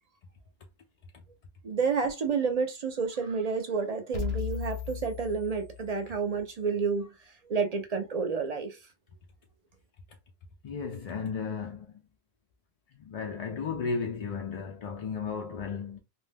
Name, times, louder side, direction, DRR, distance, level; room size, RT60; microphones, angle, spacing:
voice 1, 1.6-7.1 7.5-8.8, right 5 dB, 50° right, 0.5 m, -30 dB
sound 1, 4.1-6.2, left 9 dB, 80° left, 0.8 m, -36 dB
voice 2, 10.6-12.0 12.9-16.0, left 5 dB, 55° left, 0.4 m, -34 dB
2.6 x 2.1 x 3.3 m
omnidirectional pair, 1.0 m